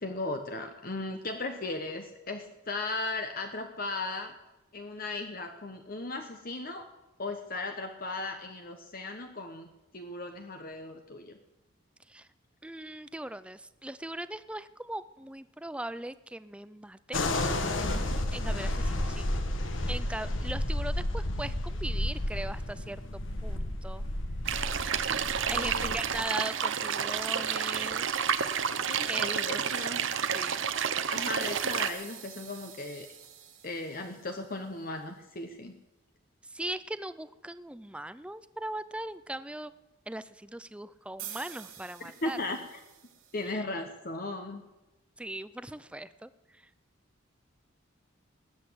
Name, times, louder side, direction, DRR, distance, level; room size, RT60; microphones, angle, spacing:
voice 1, 0.0-4.3 4.7-6.9 7.2-9.7 9.9-11.4 25.4-26.0 28.9-30.0 31.1-33.1 33.6-35.7 42.0-42.8 43.3-44.6, left 2 dB, 45° left, 5 dB, 1.1 m, -37 dB
voice 2, 12.6-17.2 18.3-19.3 19.9-21.5 21.8-24.0 25.4-28.1 29.1-29.7 30.3-30.7 36.4-39.7 40.1-42.4 43.5-43.6 45.2-46.6, right 1 dB, 5° right, 15 dB, 0.5 m, -39 dB
sound 1, 17.1-26.2, left 1 dB, 65° left, 1.5 m, -32 dB
sound 2, 24.4-31.9, right 7 dB, 65° right, 0.9 m, -30 dB
sound 3, 31.4-34.9 41.2-43.5, right 10 dB, 90° right, 2.9 m, -48 dB
20.0 x 8.3 x 8.0 m, 1.0 s
head